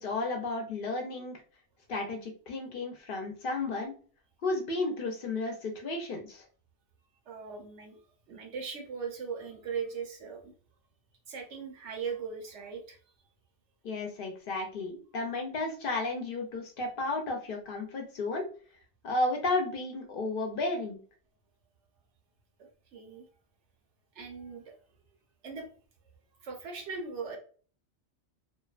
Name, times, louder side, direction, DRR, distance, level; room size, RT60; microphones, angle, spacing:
voice 1, 0.0-1.4 1.9-3.9 4.4-6.4 13.8-18.4 19.0-21.0, left 2 dB, 60° left, 3 dB, 0.6 m, -33 dB
voice 2, 7.3-8.0 8.3-10.5 11.3-13.0 22.9-23.2 24.1-24.7 25.4-25.7 26.4-27.4, right 5 dB, 90° right, 2 dB, 1.0 m, -39 dB
2.6 x 2.1 x 2.3 m, 0.41 s
omnidirectional pair, 1.2 m